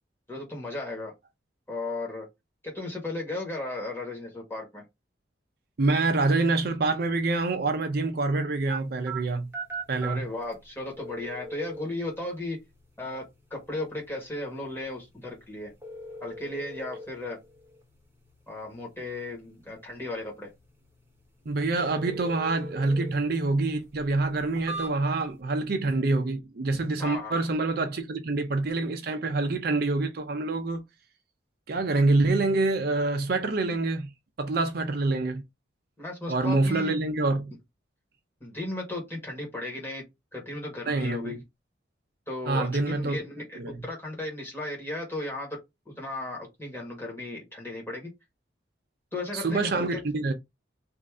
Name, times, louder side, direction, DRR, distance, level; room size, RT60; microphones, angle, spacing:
voice 1, 0.3-1.1 1.7-2.3 2.6-4.8 10.0-12.6 13.0-13.2 13.5-15.7 16.2-17.4 18.5-20.5 27.0-27.3 36.0-36.9 38.4-40.0 40.3-41.4 42.3-45.6 45.8-48.1 49.1-50.0, left 2 dB, 10° left, 1.5 m, -35 dB
voice 2, 5.8-9.5 9.9-10.3 21.5-30.8 31.7-34.1 34.4-35.4 36.3-37.5 40.9-41.4 42.5-43.2 43.6-43.8 49.3-50.3, right 3 dB, 55° right, 0.5 m, -26 dB
sound 1, 8.7-25.4, right 2 dB, 15° right, 1.0 m, -43 dB
3.1 x 2.7 x 3.5 m
head